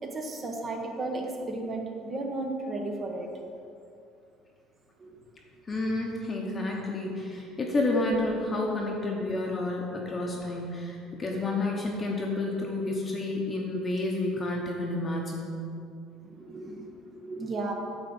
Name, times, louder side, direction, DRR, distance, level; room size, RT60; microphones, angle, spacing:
voice 1, 0.0-3.3 5.0-5.2 7.6-7.7 11.0-11.1 16.2-17.7, right 2 dB, 30° right, 2 dB, 1.2 m, -34 dB
voice 2, 5.7-15.7, left 2 dB, 20° left, -1 dB, 1.0 m, -30 dB
9.5 x 4.0 x 7.1 m, 2.5 s
cardioid pair, 140°, 0 cm